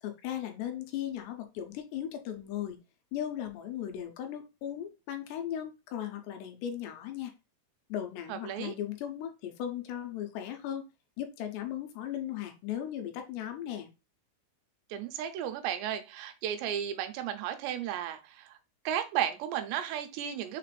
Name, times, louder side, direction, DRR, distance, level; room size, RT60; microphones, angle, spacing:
voice 1, 0.0-2.8 3.1-7.3 7.9-10.9 11.2-13.9, left 10 dB, 80° left, 5 dB, 2.8 m, -37 dB
voice 2, 8.3-8.7 14.9-18.6 18.9-20.6, right 10 dB, 85° right, 7 dB, 2.8 m, -34 dB
6.7 x 2.5 x 3.2 m, 0.28 s
omnidirectional pair, 4.9 m